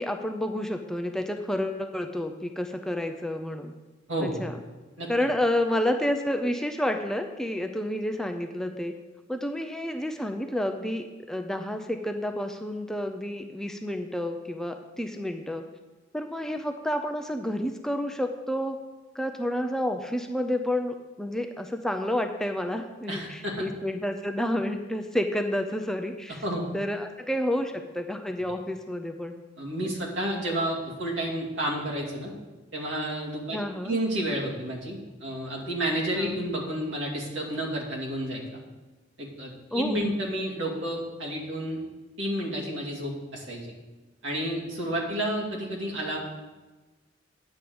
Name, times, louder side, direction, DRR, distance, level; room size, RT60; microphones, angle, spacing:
voice 1, 0.0-3.7 4.2-4.5 5.1-8.9 9.3-15.6 16.1-18.8 19.1-26.4 26.7-29.4 33.5-34.0 36.1-36.4 39.7-40.0, left 1 dB, 5° left, 5 dB, 0.4 m, -30 dB
voice 2, 4.1-4.5 5.0-5.1 23.1-23.7 26.4-26.6 29.6-32.3 32.7-33.6 33.8-38.4 39.2-41.8 42.2-43.7 44.2-46.2, right 1 dB, 70° right, -3 dB, 2.3 m, -30 dB
9.5 x 5.1 x 7.7 m, 1.2 s
head